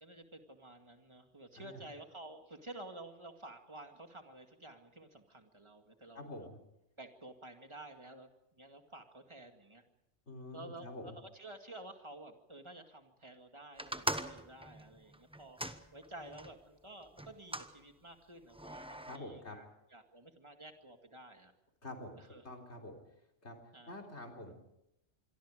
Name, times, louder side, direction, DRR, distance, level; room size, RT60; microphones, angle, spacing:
voice 1, 0.0-6.5 7.0-9.8 10.5-15.6 15.9-19.6 19.9-21.5 22.2-22.5 23.7-24.0, right 2 dB, 25° right, 4 dB, 2.2 m, -52 dB
voice 2, 1.5-1.8 6.1-6.6 10.3-11.2 19.1-19.6 21.8-22.2 22.4-23.0 23.4-23.6 23.9-24.5, left 1 dB, 70° left, 2 dB, 4.1 m, -47 dB
sound 1, 13.8-16.5 17.2-17.7 18.5-19.2, right 1 dB, 5° right, 0.9 m, -41 dB
26.5 x 22.5 x 5.1 m, 0.84 s
omnidirectional pair, 1.2 m